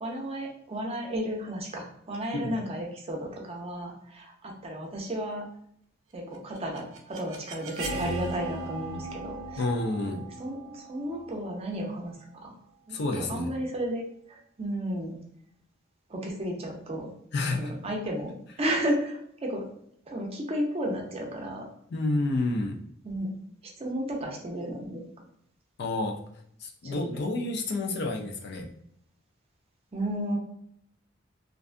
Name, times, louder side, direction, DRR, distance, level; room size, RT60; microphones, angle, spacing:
voice 1, 0.0-5.4 6.1-9.7 10.0-12.2 12.4-12.5 12.9-15.2 16.1-17.1 17.5-19.7 20.1-21.7 23.0-23.3 23.8-25.0 26.8-27.0 29.9-30.4, equal, 30° right, 0 dB, 0.6 m, -33 dB
sound 1, 6.3-12.2, right 2 dB, 80° right, 0.6 m, -38 dB
voice 2, 9.6-10.3 12.9-13.5 17.3-17.7 21.9-22.8 25.8-26.2 26.6-28.7, left 2 dB, 60° left, 3 dB, 0.4 m, -29 dB
2.6 x 2.2 x 2.4 m, 0.69 s
head